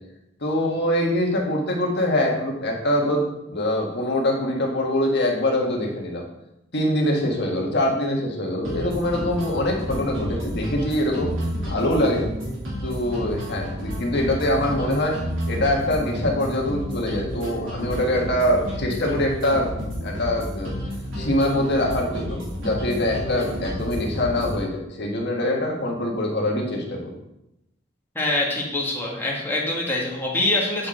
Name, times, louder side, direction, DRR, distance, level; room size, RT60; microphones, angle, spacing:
voice 1, 0.4-6.2 6.7-11.3 11.7-12.3 12.8-15.2 15.5-19.7 20.0-20.8 21.2-27.2, left 1 dB, 60° left, 0 dB, 1.6 m, -24 dB
sound 1, 8.6-24.6, equal, 80° right, 2.9 m, -31 dB
voice 2, 28.2-30.9, left 2 dB, 10° left, -4 dB, 1.7 m, -24 dB
8.5 x 6.0 x 3.8 m, 0.88 s
head